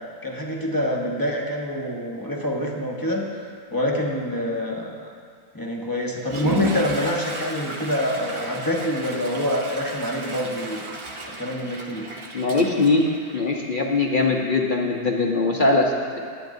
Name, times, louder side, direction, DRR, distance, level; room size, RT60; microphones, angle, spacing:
voice 1, 0.2-3.2 3.7-4.9 5.5-10.8 11.2-12.1, left 1 dB, 15° left, -1 dB, 1.0 m, -26 dB
Water / Toilet flush, 6.2-14.0, right 2 dB, 45° right, 0.3 m, -34 dB
voice 2, 12.3-13.1 13.3-16.2, left 3 dB, 45° left, 0 dB, 0.7 m, -21 dB
20.0 x 8.8 x 2.6 m, 2.2 s
omnidirectional pair, 1.6 m